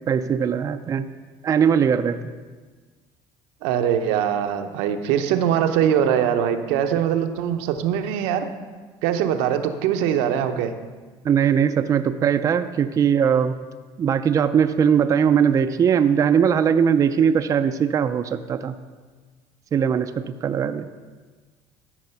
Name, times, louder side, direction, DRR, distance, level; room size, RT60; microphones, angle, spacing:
voice 1, 0.1-1.1 1.4-2.2 11.2-13.5 14.0-18.8 19.7-20.9, right 7 dB, 30° right, 8 dB, 0.4 m, -20 dB
voice 2, 3.6-8.5 9.0-10.7, right 9 dB, 80° right, 7 dB, 0.8 m, -22 dB
13.0 x 4.9 x 5.6 m, 1.4 s
cardioid pair, 115°, 11 cm